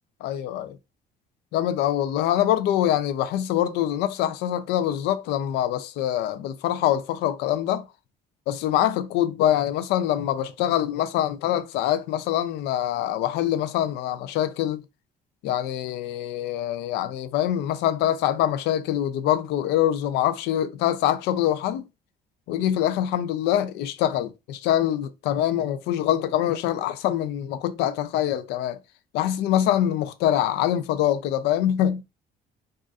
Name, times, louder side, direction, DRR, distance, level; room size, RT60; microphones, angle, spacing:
voice 1, 0.2-0.8 1.5-7.9 8.5-14.8 15.4-21.8 22.5-28.8 29.1-32.0, left 11 dB, 85° left, 0.5 m, -24 dB
4.0 x 2.5 x 2.4 m
cardioid pair, 110°, 17 cm